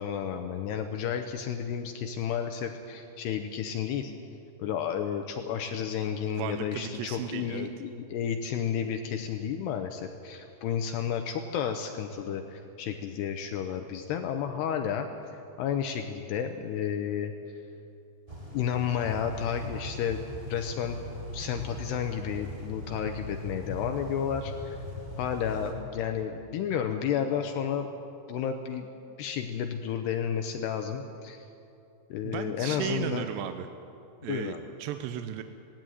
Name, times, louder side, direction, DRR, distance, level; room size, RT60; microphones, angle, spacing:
voice 1, 0.0-4.1 4.6-15.1 15.3-17.3 18.5-20.2 20.5-21.0 21.3-24.8 25.2-27.9 28.3-28.9 29.2-31.4 32.1-33.3 34.3-34.6, left 8 dB, 80° left, 6 dB, 2.6 m, -32 dB
voice 2, 6.4-7.7 32.2-33.7 34.2-35.4, right 11 dB, 80° right, 8 dB, 2.7 m, -35 dB
sound 1, 18.3-25.7, left 1 dB, 10° right, 1.8 m, -40 dB
18.0 x 16.5 x 9.3 m, 2.7 s
omnidirectional pair, 5.4 m